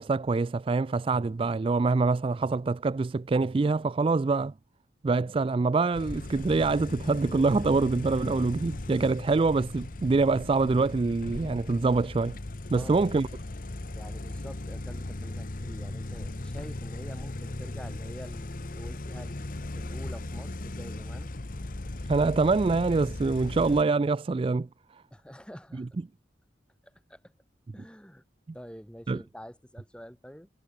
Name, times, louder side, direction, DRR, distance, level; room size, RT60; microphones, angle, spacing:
voice 1, 0.0-4.5 5.0-12.4 12.7-13.3 22.1-24.7 24.9-25.0 29.1-29.2, right 3 dB, 30° right, 0.3 m, -25 dB
sound 1, 5.9-23.8, left 2 dB, 45° left, 1.0 m, -37 dB
voice 2, 13.9-21.4 25.1-25.9 26.8-27.3 27.7-28.2 28.5-30.5, equal, 5° left, 6.4 m, -47 dB
head